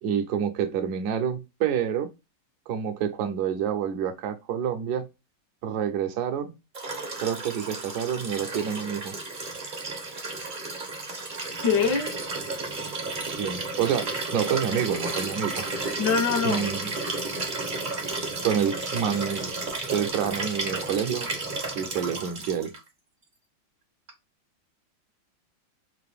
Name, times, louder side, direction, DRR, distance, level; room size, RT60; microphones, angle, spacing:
voice 1, 0.0-2.1 2.7-5.1 5.6-6.5 7.2-9.1 13.4-15.8 16.4-16.9 18.4-19.5 19.9-21.3 21.7-22.7, right 8 dB, 65° right, 1.1 m, -28 dB
Liquid, 6.7-22.8 24.1-24.2, right 3 dB, 45° right, 0.6 m, -32 dB
voice 2, 11.6-12.1 15.8-16.7 17.0-17.1, left 6 dB, 65° left, 1.4 m, -24 dB
3.7 x 2.6 x 3.3 m
omnidirectional pair, 2.2 m